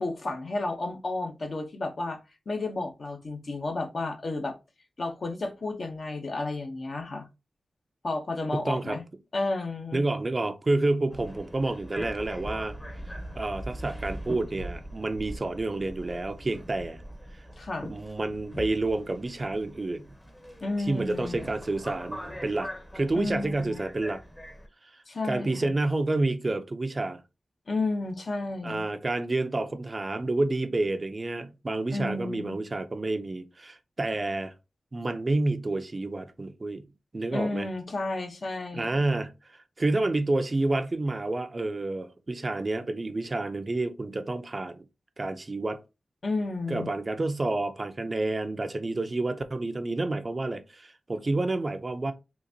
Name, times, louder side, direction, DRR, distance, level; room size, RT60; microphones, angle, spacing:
voice 1, 0.0-2.2 2.5-4.6 5.0-7.3 8.0-9.0 9.3-10.0 17.6-17.9 20.6-21.4 23.1-23.9 25.1-25.7 27.7-28.9 31.9-32.6 37.3-39.0 46.2-46.9, left 2 dB, 60° left, 0.8 m, -32 dB
voice 2, 8.5-9.0 9.9-12.7 13.4-17.0 17.9-20.0 20.9-22.7 22.9-24.2 25.2-27.2 28.6-34.5 34.9-36.8 37.1-37.7 38.7-39.3 39.8-44.8 45.2-45.8 46.7-52.1, right 2 dB, 40° right, 0.5 m, -29 dB
Subway metro underground, 11.1-24.7, equal, 15° left, 0.8 m, -41 dB
3.9 x 2.5 x 2.7 m
cardioid pair, 55°, 0 cm